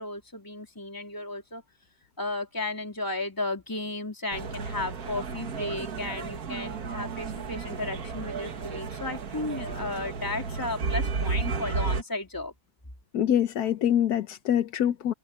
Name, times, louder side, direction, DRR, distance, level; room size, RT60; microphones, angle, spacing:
voice 1, 0.0-1.6 2.2-12.5, left 2 dB, 15° left, 3.6 m, -34 dB
sound 1, 4.3-12.0, right 4 dB, 75° right, 2.0 m, -33 dB
voice 2, 13.1-15.1, left 10 dB, 90° left, 1.4 m, -25 dB
open air
omnidirectional pair, 1.6 m